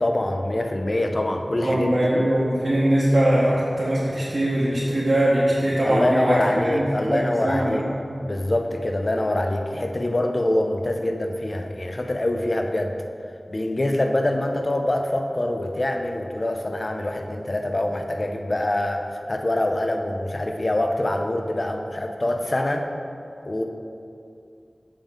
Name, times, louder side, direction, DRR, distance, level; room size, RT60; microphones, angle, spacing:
voice 1, 0.0-2.3 5.8-7.8 8.2-12.9 13.5-22.9 23.4-23.6, left 1 dB, 45° left, 4 dB, 0.5 m, -25 dB
voice 2, 1.6-7.8, right 1 dB, 55° right, -8 dB, 1.0 m, -21 dB
7.2 x 5.3 x 3.6 m, 2.6 s
wide cardioid pair, 55°, 0 cm